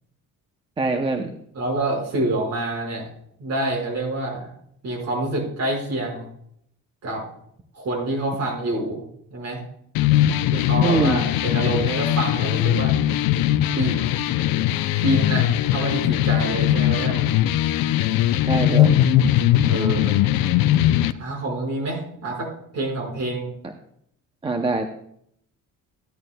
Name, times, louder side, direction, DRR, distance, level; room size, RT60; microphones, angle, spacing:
voice 1, 0.8-1.3 10.8-11.2 18.4-19.1 24.4-24.8, right 3 dB, 15° right, 4 dB, 0.6 m, -23 dB
voice 2, 1.5-3.1 3.4-4.5 4.8-6.3 7.0-7.2 7.7-9.0 9.3-9.6 10.5-13.0 13.7-14.0 15.0-17.2 19.7-20.2 21.2-22.5 22.7-23.4, right 2 dB, 50° right, -1 dB, 5.0 m, -27 dB
sound 1, 9.9-21.1, left 12 dB, 85° left, 0.6 m, -20 dB
15.0 x 11.0 x 2.2 m, 0.69 s
cardioid pair, 165°, 34 cm